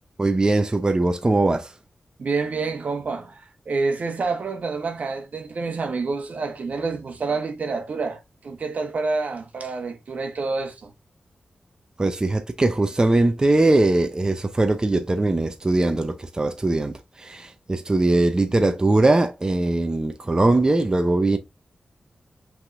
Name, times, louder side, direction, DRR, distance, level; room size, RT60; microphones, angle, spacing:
voice 1, 0.2-1.7 12.0-21.4, right 2 dB, 30° right, 0.6 m, -21 dB
voice 2, 2.2-10.9, right 4 dB, 70° right, 1.1 m, -28 dB
5.7 x 3.5 x 2.5 m
cardioid pair, 70°, 3 cm